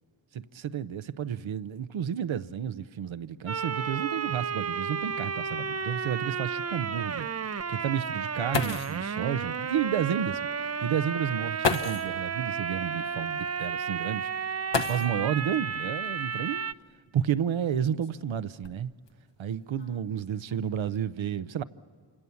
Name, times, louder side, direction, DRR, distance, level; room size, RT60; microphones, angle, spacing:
voice 1, 0.3-7.3 7.7-14.3 14.7-16.7 17.1-18.9 19.4-21.6, right 9 dB, 90° right, 0.8 m, -31 dB
sound 1, 3.5-16.7, right 6 dB, 35° right, 0.6 m, -32 dB
sound 2, 4.6-4.7 5.1-5.2 5.8-5.9 8.2-8.3 8.5-9.1 10.4-10.5 11.6-12.2 14.7-15.4 16.8-16.9 17.6-19.1 19.8-20.1 20.5-20.9, left 5 dB, 65° left, 1.1 m, -32 dB
28.5 x 26.0 x 7.0 m
cardioid pair, 50°, 45 cm